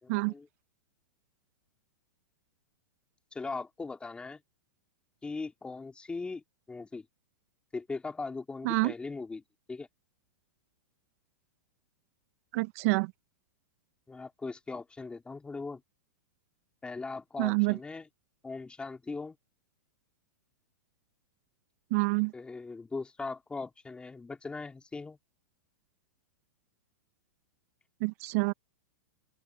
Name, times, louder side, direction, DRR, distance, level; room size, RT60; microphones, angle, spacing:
voice 1, 0.0-0.5 3.3-4.4 5.2-7.1 7.7-9.4 9.7-9.9 14.1-15.8 16.8-18.1 18.4-19.3 22.3-25.2, left 3 dB, 10° left, 3.1 m, -39 dB
voice 2, 12.5-13.1 17.4-17.8 21.9-22.3 28.0-28.5, right 28 dB, 50° right, 1.0 m, -27 dB
open air
hypercardioid pair, 130°, 10 cm